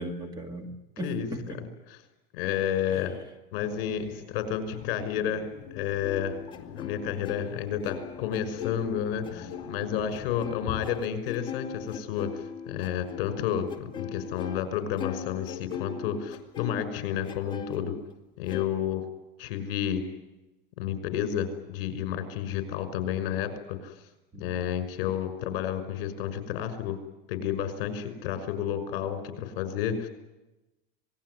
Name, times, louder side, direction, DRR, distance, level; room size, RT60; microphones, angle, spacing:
voice 1, 0.0-1.6 2.9-3.0 24.3-24.9, right 1 dB, 15° right, 7 dB, 2.0 m, -38 dB
voice 2, 2.3-3.2 3.5-5.5 5.7-6.4 6.8-17.9 18.4-19.0 19.4-20.0 20.8-23.9 24.4-27.0 27.3-30.1, left 9 dB, 65° left, 10 dB, 5.7 m, -31 dB
sound 1, 3.6-10.9, left 9 dB, 40° left, 4.8 m, -44 dB
sound 2, 6.0-14.7 15.0-17.8 18.5-18.7, left 7 dB, 15° left, 2.4 m, -40 dB
26.5 x 20.0 x 9.9 m, 1.0 s
supercardioid pair, 170°, 29 cm